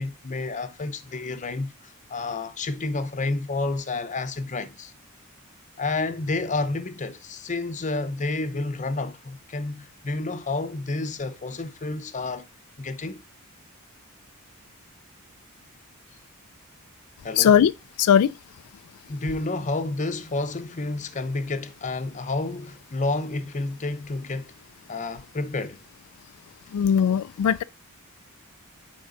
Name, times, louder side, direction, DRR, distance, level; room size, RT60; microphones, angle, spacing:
voice 1, 0.0-4.9 5.8-12.5 12.8-13.2 17.2-17.6 19.1-24.5 24.9-25.8, left 3 dB, 35° left, 0.7 m, -30 dB
voice 2, 17.4-17.7 18.0-18.3 26.7-27.6, left 8 dB, 80° left, 0.3 m, -19 dB
9.2 x 3.7 x 3.8 m
head